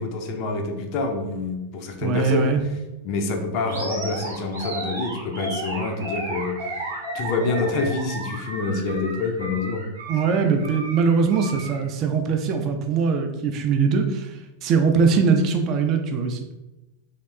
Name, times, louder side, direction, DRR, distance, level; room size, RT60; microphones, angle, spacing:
voice 1, 0.0-2.5 3.0-6.8 7.1-9.9, left 3 dB, 40° left, 4 dB, 0.4 m, -27 dB
voice 2, 2.0-2.6 10.1-14.3 14.6-16.4, right 5 dB, 35° right, 5 dB, 0.3 m, -21 dB
Animal, 3.7-11.8, right 1 dB, 70° right, 0.7 m, -33 dB
2.7 x 2.1 x 2.2 m, 1.0 s
figure-of-eight pair, 90°, 0 cm